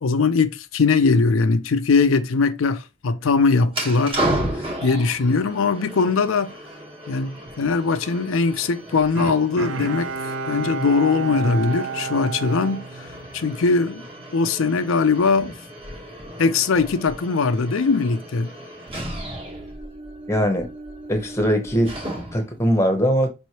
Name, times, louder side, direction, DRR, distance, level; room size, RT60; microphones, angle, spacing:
voice 1, 0.0-4.2 4.8-6.5 7.1-14.0 14.3-15.5 16.4-18.5, left 4 dB, 85° left, 0.5 m, -21 dB
sound 1, 3.7-22.6, right 1 dB, 25° right, 1.2 m, -34 dB
Bowed string instrument, 9.2-13.7 14.1-14.2, right 5 dB, 70° right, 0.4 m, -31 dB
voice 2, 20.3-20.6 21.1-21.9 22.3-23.3, equal, 15° left, 0.9 m, -20 dB
5.3 x 3.1 x 2.8 m
head